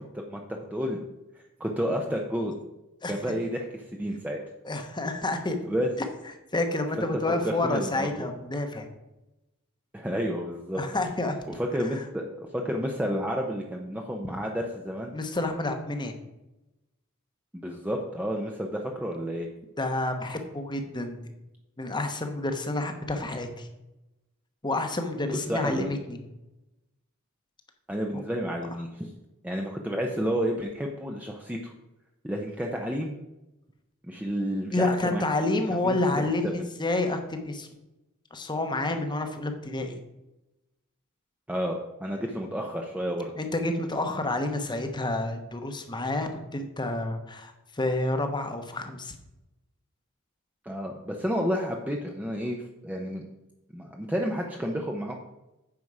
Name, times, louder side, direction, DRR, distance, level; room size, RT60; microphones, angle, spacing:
voice 1, 0.1-1.0 1.6-2.6 3.1-4.4 5.6-5.9 7.1-8.3 9.9-10.8 11.5-15.1 17.5-19.5 25.5-26.0 27.9-29.1 29.4-31.7 32.2-33.2 34.1-35.3 35.8-36.6 41.5-43.3 50.6-52.6 52.8-53.3 53.7-55.2, equal, 5° right, 1 dB, 0.7 m, -31 dB
voice 2, 4.6-5.6 6.5-8.9 10.7-11.4 11.9-12.0 15.1-16.2 19.8-21.2 21.8-23.7 24.6-26.2 28.1-28.2 34.7-37.7 38.3-40.0 43.4-49.1, left 2 dB, 20° left, 6 dB, 1.0 m, -29 dB
9.6 x 6.3 x 4.8 m, 0.97 s
head